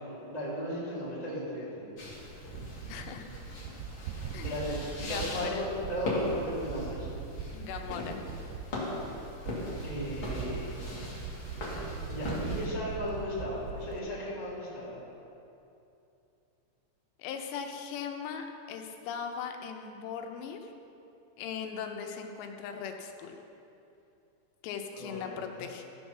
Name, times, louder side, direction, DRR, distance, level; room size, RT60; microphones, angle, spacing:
voice 1, 0.0-2.0 4.1-7.1 8.8-8.9 9.8-10.7 12.1-15.0 24.9-25.6, equal, 20° right, -8 dB, 1.0 m, -36 dB
sound 1, 2.0-12.7, left 2 dB, 45° left, 1.7 m, -39 dB
sound 2, 2.4-14.0, right 6 dB, 90° right, 2.8 m, -41 dB
voice 2, 2.9-3.3 4.3-4.6 5.0-5.7 7.5-8.3 17.2-20.7 21.4-23.4 24.6-25.8, left 7 dB, 85° left, 4 dB, 3.0 m, -39 dB
15.0 x 5.5 x 6.1 m, 2.7 s
omnidirectional pair, 4.9 m